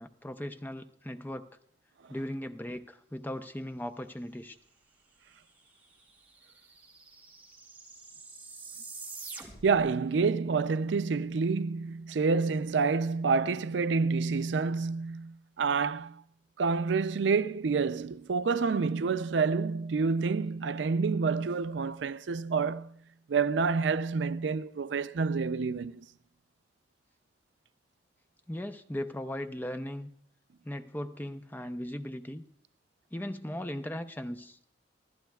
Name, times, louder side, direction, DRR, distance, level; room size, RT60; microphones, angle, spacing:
voice 1, 0.0-1.5 2.1-4.6 28.5-30.1 30.6-32.4 33.1-34.6, left 1 dB, 10° left, 0.6 m, -38 dB
sound 1, 5.4-5.5 5.7-9.9, right 4 dB, 10° right, 3.2 m, -47 dB
voice 2, 9.6-16.2 16.6-22.9 23.3-26.1, right 4 dB, 85° right, 0.4 m, -28 dB
26.0 x 14.5 x 2.3 m
head